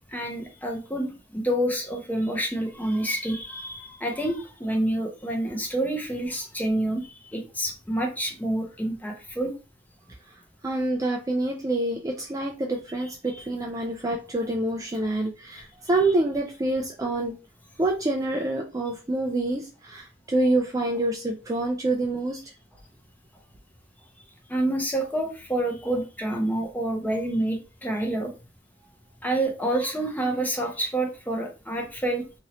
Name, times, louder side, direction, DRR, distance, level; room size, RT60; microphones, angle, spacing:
voice 1, 0.1-9.5 24.5-28.3 29.2-32.2, right 1 dB, 10° left, 2 dB, 0.7 m, -28 dB
voice 2, 10.6-17.4 17.8-22.4, right 2 dB, 20° right, 1 dB, 0.3 m, -27 dB
2.9 x 2.7 x 2.9 m, 0.31 s
head